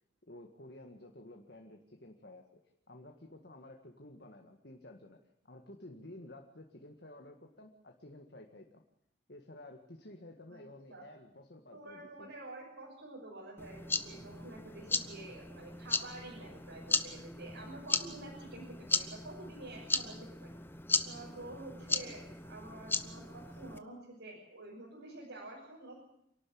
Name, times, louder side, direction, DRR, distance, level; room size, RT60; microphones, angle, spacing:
voice 1, 0.3-2.5 2.9-8.8 9.3-12.3, left 1 dB, 55° left, 3 dB, 1.9 m, -52 dB
voice 2, 10.5-11.0 11.7-20.6 21.0-26.0, right 2 dB, 90° right, -4 dB, 6.2 m, -49 dB
sound 1, 13.6-23.8, left 3 dB, 10° left, 0.8 m, -37 dB
27.0 x 12.0 x 8.7 m, 0.76 s
head